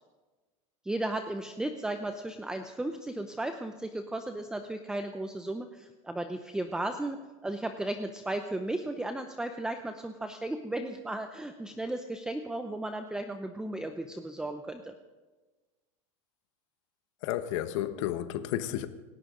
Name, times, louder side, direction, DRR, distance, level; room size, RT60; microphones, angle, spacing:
voice 1, 0.8-7.2 7.4-14.9, right 1 dB, 5° right, 0.7 m, -35 dB
voice 2, 17.2-18.9, left 12 dB, 70° left, 1.2 m, -32 dB
27.0 x 12.5 x 3.8 m
supercardioid pair, 140°, 17 cm